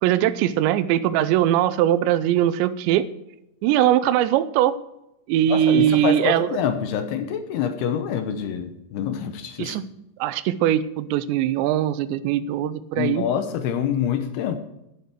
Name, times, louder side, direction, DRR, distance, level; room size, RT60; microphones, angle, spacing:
voice 1, 0.0-3.1 3.6-4.8 5.3-6.6 9.6-9.8 10.2-13.3, right 12 dB, 85° right, 14 dB, 2.9 m, -21 dB
voice 2, 5.5-9.8 13.0-14.6, left 8 dB, 75° left, 8 dB, 2.7 m, -26 dB
11.5 x 11.0 x 4.7 m, 0.85 s
omnidirectional pair, 5.1 m